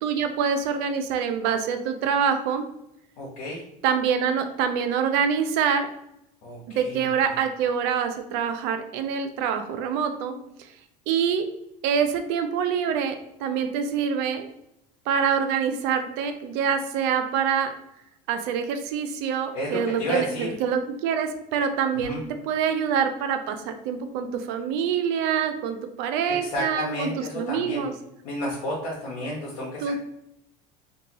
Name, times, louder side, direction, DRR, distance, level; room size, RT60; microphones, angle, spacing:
voice 1, 0.0-2.7 3.8-5.9 6.7-10.4 11.1-11.4 11.8-14.5 15.1-17.7 18.3-27.9 29.8-30.0, right 7 dB, 65° right, 8 dB, 0.4 m, -25 dB
voice 2, 3.2-3.6 6.4-7.1 19.5-20.5 21.9-22.2 26.3-27.9 28.2-30.0, equal, 80° left, -6 dB, 0.8 m, -31 dB
2.5 x 2.2 x 2.9 m, 0.81 s
supercardioid pair, 100°, 19 cm